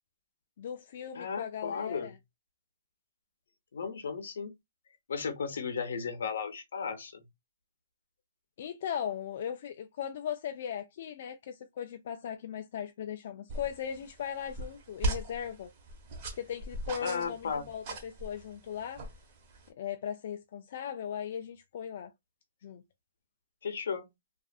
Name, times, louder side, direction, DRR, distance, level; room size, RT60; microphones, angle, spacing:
voice 1, 0.6-2.2 8.6-15.7 16.3-19.0 19.8-22.1 22.6-22.8, left 8 dB, 50° left, 0.3 m, -38 dB
voice 2, 1.1-2.1 3.7-4.5 5.1-7.2 17.0-17.7 23.6-24.1, left 6 dB, 75° left, 0.7 m, -35 dB
sound 1, 13.5-19.7, right 1 dB, 35° right, 1.1 m, -39 dB
2.4 x 2.4 x 2.3 m
hypercardioid pair, 165°, 0 cm